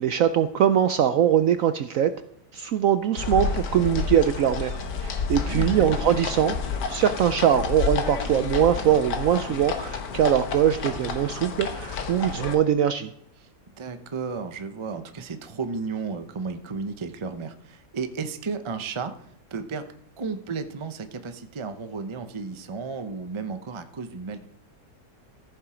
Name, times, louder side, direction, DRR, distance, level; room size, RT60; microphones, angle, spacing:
voice 1, 0.0-2.1 2.5-6.5 6.9-13.1, right 9 dB, 70° right, 11 dB, 0.8 m, -22 dB
sound 1, 3.2-12.6, left 5 dB, 70° left, 1.8 m, -30 dB
voice 2, 13.8-19.1 19.5-19.9 20.2-24.4, right 4 dB, 45° right, 9 dB, 0.3 m, -33 dB
14.5 x 7.2 x 5.0 m, 0.71 s
omnidirectional pair, 1.9 m